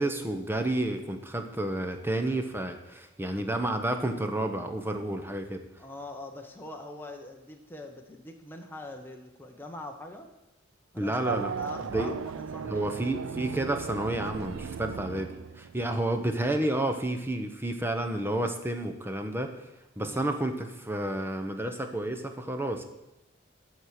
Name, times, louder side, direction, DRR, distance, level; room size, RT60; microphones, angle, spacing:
voice 1, 0.0-5.6 11.0-11.5 11.8-12.1 12.7-19.7 20.0-22.8, right 1 dB, 10° right, 5 dB, 0.8 m, -30 dB
voice 2, 5.8-10.3 10.9-12.9 15.9-16.1 20.0-20.3, left 2 dB, 10° left, 2 dB, 1.0 m, -43 dB
Race car auto racing / Accelerating revving vroom, 11.2-15.9, right 6 dB, 80° right, 0.4 m, -36 dB
12.5 x 4.7 x 6.5 m, 0.98 s
head